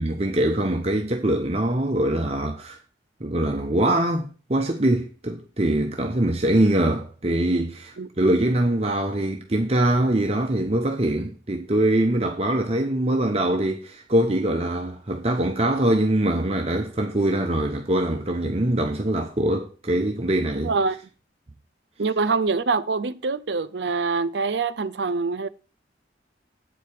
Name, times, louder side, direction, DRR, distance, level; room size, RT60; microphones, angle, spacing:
voice 1, 0.0-2.8 3.2-20.7, right 1 dB, 35° right, 0.9 m, -23 dB
voice 2, 20.6-21.0 22.0-25.5, right 4 dB, 75° right, 0.6 m, -24 dB
8.5 x 5.1 x 6.6 m
head